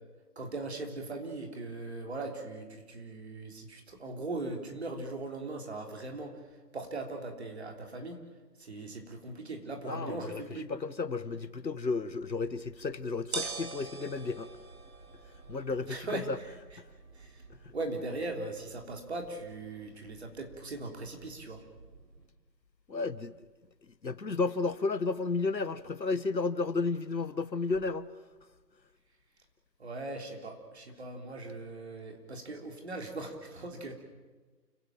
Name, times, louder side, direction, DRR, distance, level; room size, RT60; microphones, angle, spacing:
voice 1, 0.4-8.2 8.6-10.7 15.9-16.3 17.1-17.4 17.7-21.6 29.8-34.0, right 2 dB, 40° right, 3.6 m, -39 dB
voice 2, 9.8-10.4 10.7-14.5 15.5-16.4 17.6-17.7 22.9-23.3 24.0-28.1, left 4 dB, 90° left, 1.4 m, -32 dB
sound 1, 12.2-22.3, right 4 dB, 60° right, 3.4 m, -46 dB
29.0 x 16.5 x 9.0 m
figure-of-eight pair, 165°, 49 cm